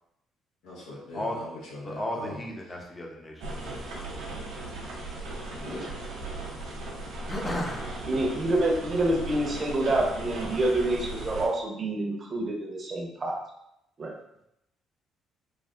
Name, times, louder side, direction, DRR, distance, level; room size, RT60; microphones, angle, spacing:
voice 1, 0.6-2.4 5.6-6.0, left 1 dB, 80° left, -8 dB, 1.0 m, -41 dB
voice 2, 1.8-3.4 5.7-5.8 7.3-8.1, left 1 dB, 20° left, 0 dB, 0.7 m, -34 dB
sound 1, 3.4-11.5, right 2 dB, 80° right, 0.7 m, -37 dB
voice 3, 8.1-13.4 14.0-14.2, right 1 dB, 40° right, 0 dB, 0.8 m, -27 dB
3.3 x 2.3 x 2.5 m, 0.82 s
supercardioid pair, 60°, 0 cm